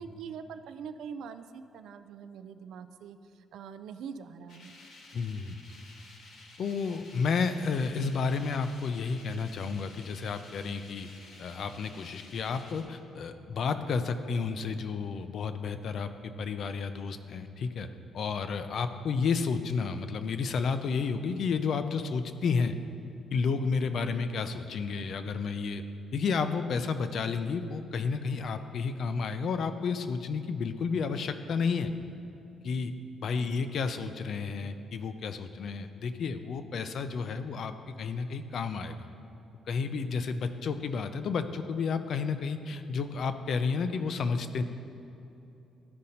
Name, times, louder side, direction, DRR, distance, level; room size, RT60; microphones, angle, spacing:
voice 1, 0.0-4.8 33.3-33.6, right 6 dB, 75° right, 10 dB, 0.4 m, -43 dB
sound 1, 4.5-12.8, left 2 dB, 65° left, 1.3 m, -52 dB
voice 2, 5.1-5.6 6.6-11.1 11.4-17.9 18.1-22.7 23.3-25.8 26.1-31.9 32.6-32.9 33.2-37.7 38.0-38.9 39.7-44.6, left 5 dB, 50° left, 9 dB, 0.4 m, -31 dB
13.0 x 5.2 x 2.8 m, 2.9 s
cardioid pair, 160°, 0 cm